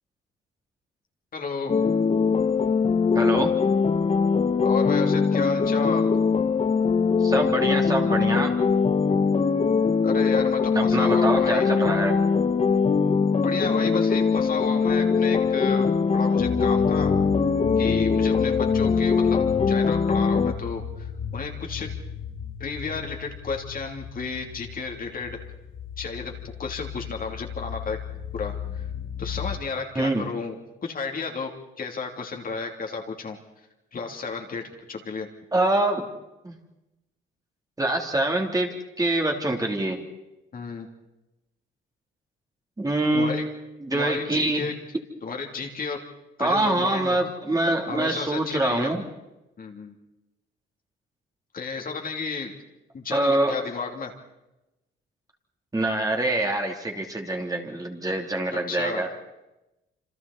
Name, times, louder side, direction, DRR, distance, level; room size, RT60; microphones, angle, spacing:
voice 1, 1.3-1.7 4.6-6.2 10.0-11.7 13.4-17.1 17.8-21.1 21.3-21.9 22.6-25.4 26.0-28.0 28.3-28.9 29.2-33.4 33.9-35.3 40.5-40.9 43.1-43.5 43.9-44.7 45.2-46.0 46.4-47.2 47.9-48.9 49.6-49.9 51.5-52.5 52.9-54.1 58.7-59.0, left 4 dB, 45° left, 2 dB, 3.1 m, -32 dB
sound 1, 1.7-20.5, left 5 dB, 30° left, 0.9 m, -22 dB
voice 2, 3.1-3.5 7.2-8.5 10.7-12.2 29.9-30.3 35.5-36.1 36.4-36.6 37.8-40.1 42.8-43.5 43.8-44.7 46.4-49.0 53.1-53.6 55.7-59.1, right 1 dB, 20° right, 2 dB, 3.2 m, -25 dB
sound 2, 16.4-29.6, left 7 dB, 90° left, 2.5 m, -35 dB
27.5 x 26.5 x 4.3 m, 0.99 s
cardioid pair, 90°, 20 cm